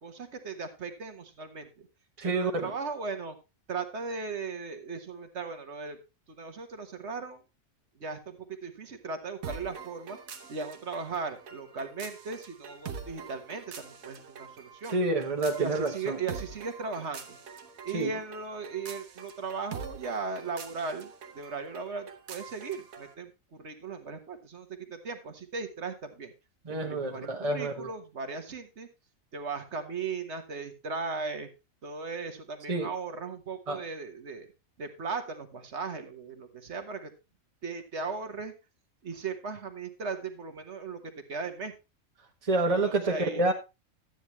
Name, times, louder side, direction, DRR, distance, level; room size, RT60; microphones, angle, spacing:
voice 1, 0.0-1.9 2.2-3.4 3.7-6.0 6.3-7.4 8.0-10.2 10.5-14.9 15.6-17.4 17.8-26.3 26.7-28.9 29.3-31.5 31.8-34.5 34.8-37.1 37.6-38.5 39.0-41.7 42.8-43.4, right 4 dB, 55° right, 7 dB, 1.6 m, -37 dB
voice 2, 2.2-2.7 14.9-16.2 17.9-18.2 26.6-27.9 32.7-32.9 33.7-33.8 42.4-43.5, right 2 dB, 25° right, 1 dB, 1.4 m, -28 dB
sound 1, 9.4-23.1, right 6 dB, 80° right, 1.5 m, -45 dB
12.0 x 9.1 x 3.2 m, 0.26 s
omnidirectional pair, 1.4 m